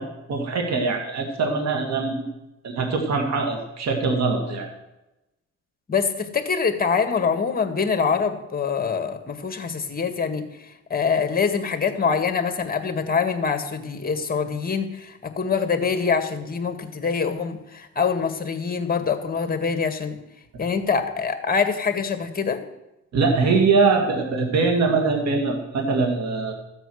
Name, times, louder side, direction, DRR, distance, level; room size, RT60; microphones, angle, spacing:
voice 1, 0.0-2.2 2.6-4.7 23.1-26.5, right 4 dB, 60° right, 3 dB, 2.3 m, -22 dB
voice 2, 5.9-10.5 10.9-20.2 20.6-22.6, left 5 dB, 30° left, 7 dB, 1.8 m, -24 dB
14.0 x 8.0 x 6.4 m, 0.95 s
cardioid pair, 90°, 30 cm